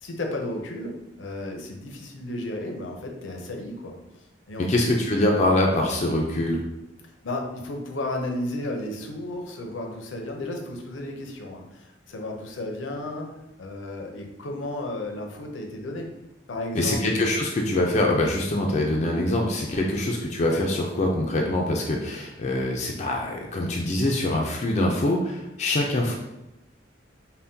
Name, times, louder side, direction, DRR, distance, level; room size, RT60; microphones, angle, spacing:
voice 1, 0.0-3.9 4.5-4.9 7.2-13.3 13.6-16.1 16.5-17.0, left 1 dB, 85° left, 2 dB, 0.6 m, -33 dB
voice 2, 4.6-6.6 16.7-26.1, left 1 dB, 35° left, 0 dB, 0.4 m, -24 dB
5.5 x 2.2 x 2.7 m, 0.95 s
head